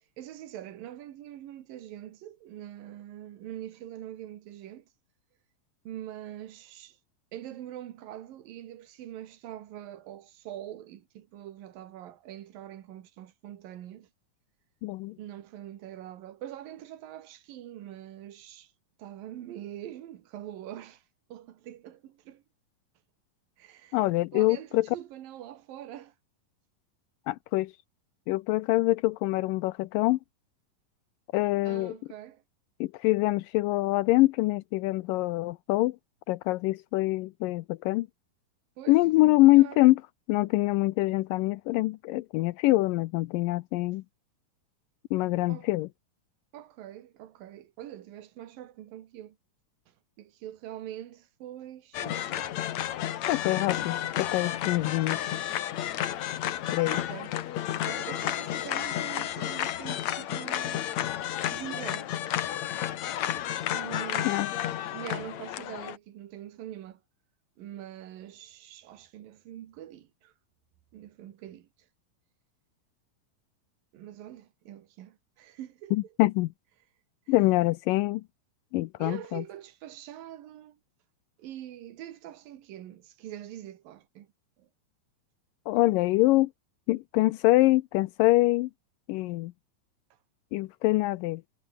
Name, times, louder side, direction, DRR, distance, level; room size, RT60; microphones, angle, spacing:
voice 1, 0.2-4.9 5.8-7.0 7.3-14.1 15.2-18.7 19.0-21.0 21.3-22.4 23.6-24.0 24.3-26.1 31.6-32.4 38.8-39.8 45.5-45.7 46.5-49.4 49.9-52.6 56.9-57.4 57.9-60.9 61.5-62.1 63.7-64.4 64.9-67.0 67.6-70.3 70.9-71.7 73.9-76.1 79.0-80.8 81.4-84.3 84.6-84.7, right 12 dB, 80° right, 3.3 m, -44 dB
voice 2, 14.8-15.2 23.9-24.9 27.3-27.7 28.3-30.2 31.3-31.9 32.8-36.0 36.3-38.1 38.9-40.0 40.3-44.0 45.1-45.9 53.3-55.2 56.7-57.0 64.2-64.5 75.9-76.5 77.3-78.2 78.7-79.4 85.7-86.5 86.9-88.7 89.1-89.5 90.5-91.4, left 19 dB, 80° left, 2.3 m, -24 dB
sound 1, 51.9-66.0, left 12 dB, 60° left, 2.3 m, -32 dB
omnidirectional pair, 4.0 m